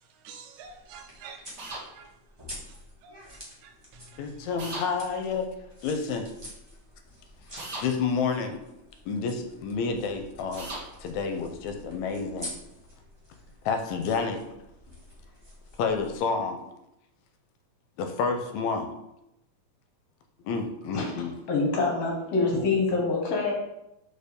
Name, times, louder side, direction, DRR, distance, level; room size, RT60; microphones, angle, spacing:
voice 1, 0.2-1.4 1.7-2.1 3.0-3.1 3.6-4.5, right 5 dB, 85° right, 2.1 m, -48 dB
sound 1, 0.6-16.2, equal, 15° right, 0.8 m, -48 dB
sound 2, 1.6-1.8 4.6-4.9 7.6-7.9 10.6-10.8, right 2 dB, 45° right, 1.4 m, -36 dB
voice 2, 4.2-5.5 5.8-6.3 7.8-8.6 9.1-10.7 11.0-12.5 13.7-14.4 15.8-16.6 18.0-18.9 20.4-21.3, left 5 dB, 85° left, 2.0 m, -29 dB
voice 3, 21.5-23.5, left 3 dB, 60° left, 2.1 m, -25 dB
5.0 x 4.4 x 5.1 m
omnidirectional pair, 3.3 m